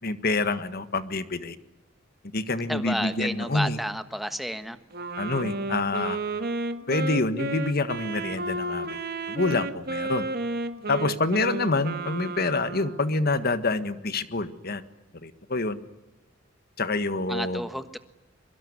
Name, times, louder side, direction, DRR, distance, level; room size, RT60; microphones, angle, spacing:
voice 1, 0.0-1.6 2.3-3.8 5.2-6.2 6.9-8.9 9.3-10.3 10.9-14.8 15.2-15.8 16.8-17.7, left 3 dB, 50° left, 12 dB, 1.6 m, -27 dB
voice 2, 2.7-4.8 17.3-18.0, equal, ahead, 9 dB, 1.4 m, -31 dB
Wind instrument woodwind instrument, 4.9-13.2, right 2 dB, 50° right, 1.8 m, -32 dB
23.5 x 23.5 x 9.8 m, 0.99 s
head